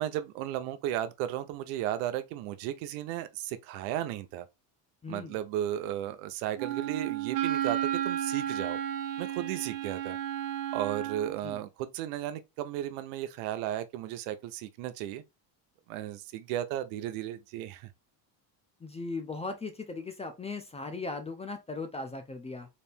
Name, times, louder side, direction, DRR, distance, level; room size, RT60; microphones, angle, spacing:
voice 1, 0.0-4.5 5.1-8.8 9.2-10.2 10.7-15.2 15.9-17.9, right 12 dB, 85° right, 0.8 m, -34 dB
voice 2, 5.0-5.3 11.4-11.6 18.8-22.7, left 3 dB, 15° left, 0.4 m, -38 dB
Wind instrument woodwind instrument, 6.6-11.4, right 11 dB, 45° right, 0.5 m, -32 dB
4.2 x 2.6 x 3.4 m
cardioid pair, 135°, 48 cm